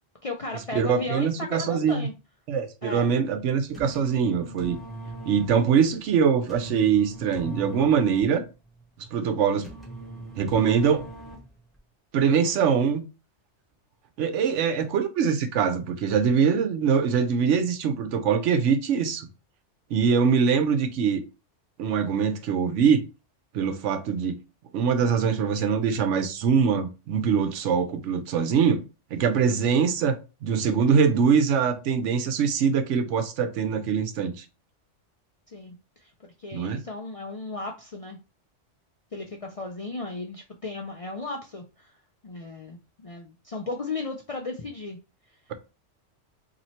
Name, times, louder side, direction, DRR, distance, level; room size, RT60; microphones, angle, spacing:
voice 1, 0.2-2.1 2.8-3.1 35.5-36.1 36.4-38.2 39.1-41.9 42.2-45.0, left 3 dB, 50° left, 0.4 m, -35 dB
voice 2, 0.8-2.1 2.5-4.8 5.3-8.4 9.1-9.7 10.4-11.1 12.1-13.0 14.2-19.3 19.9-21.2 21.8-23.0 23.5-24.4 24.7-28.8 29.1-34.4 36.5-36.8, right 6 dB, 80° right, 1.0 m, -23 dB
sound 1, 3.7-11.8, right 2 dB, ahead, 0.9 m, -41 dB
2.9 x 2.7 x 4.2 m
omnidirectional pair, 1.2 m